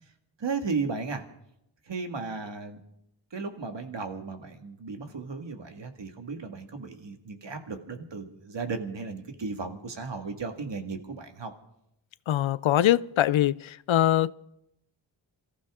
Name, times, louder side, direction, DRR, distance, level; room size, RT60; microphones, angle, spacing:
voice 1, 0.4-1.2 1.9-2.8 3.3-11.5, right 4 dB, 70° right, 2.0 m, -35 dB
voice 2, 12.3-13.5 13.9-14.3, left 12 dB, 90° left, 0.5 m, -22 dB
26.5 x 14.5 x 3.7 m
wide cardioid pair, 70°, 46 cm